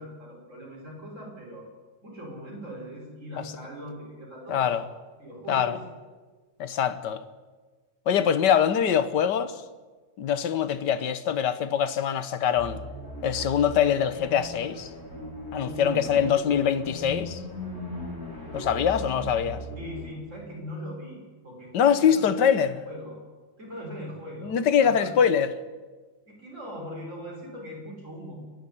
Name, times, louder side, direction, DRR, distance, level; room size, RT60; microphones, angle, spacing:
voice 1, 0.0-1.7 2.0-4.7 5.2-5.8 15.6-16.2 19.7-23.2 23.6-25.3 26.3-28.4, equal, 45° right, 6.4 m, -40 dB
voice 2, 4.5-4.8 5.5-5.8 6.6-7.2 8.1-9.5 10.2-12.8 13.2-14.9 15.5-17.4 18.5-19.6 21.7-22.8 24.4-25.5, left 8 dB, 80° left, 1.7 m, -23 dB
sound 1, 12.5-20.2, left 1 dB, 55° left, 4.6 m, -38 dB
30.0 x 10.0 x 9.9 m
omnidirectional pair, 1.8 m